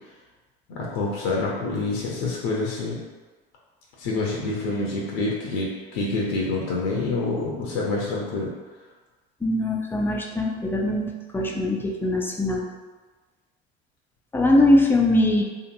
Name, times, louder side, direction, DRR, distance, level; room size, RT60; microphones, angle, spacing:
voice 1, 0.7-3.0 4.0-8.5, left 3 dB, 65° left, -3 dB, 0.7 m, -27 dB
voice 2, 9.4-12.7 14.3-15.4, left 1 dB, 5° left, -1 dB, 0.4 m, -21 dB
2.8 x 2.5 x 2.6 m, 1.3 s
hypercardioid pair, 65°, 31 cm